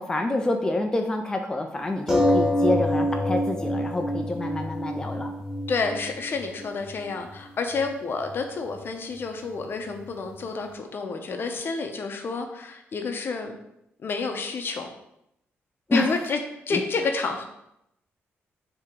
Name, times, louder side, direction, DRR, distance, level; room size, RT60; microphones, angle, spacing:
voice 1, 0.0-5.3 15.9-16.1 16.7-16.8, left 2 dB, 15° left, 3 dB, 0.4 m, -27 dB
sound 1, 2.1-7.1 7.8-7.9 8.2-8.3, left 1 dB, 10° right, 1.2 m, -26 dB
voice 2, 5.7-13.5 14.0-14.9 15.9-16.4 16.7-17.4, left 4 dB, 50° left, 4 dB, 0.6 m, -29 dB
4.6 x 2.9 x 3.6 m, 0.81 s
cardioid pair, 90°, 5 cm